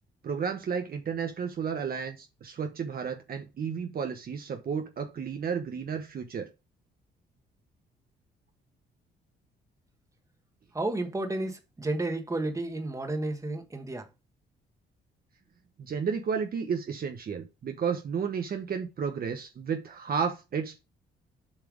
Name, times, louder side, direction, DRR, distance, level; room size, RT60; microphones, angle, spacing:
voice 1, 0.2-6.5 15.8-20.8, right 6 dB, 50° right, 0.9 m, -32 dB
voice 2, 10.7-14.1, right 2 dB, 15° right, 1.4 m, -32 dB
7.3 x 3.3 x 5.0 m
cardioid pair, 90°, 20 cm